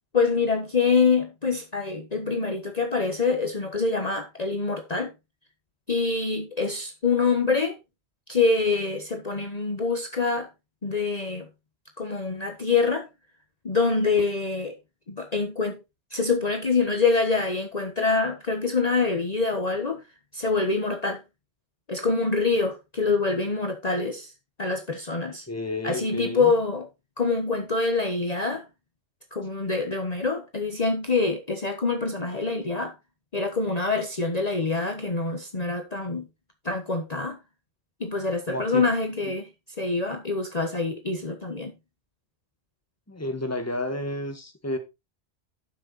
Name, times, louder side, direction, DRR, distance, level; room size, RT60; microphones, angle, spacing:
voice 1, 0.1-5.1 5.9-7.7 8.3-10.5 10.8-11.4 12.0-13.1 13.6-14.7 15.1-15.8 16.1-20.0 20.3-21.2 21.9-24.3 24.6-25.5 25.8-26.9 27.2-28.6 29.3-32.9 33.3-36.3 36.6-37.4 38.0-39.5 39.8-41.7, left 4 dB, 35° left, 1.3 m, -25 dB
voice 2, 25.5-26.5 38.5-38.9 43.1-44.8, left 1 dB, 15° left, 1.7 m, -31 dB
11.5 x 6.6 x 4.0 m
omnidirectional pair, 1.2 m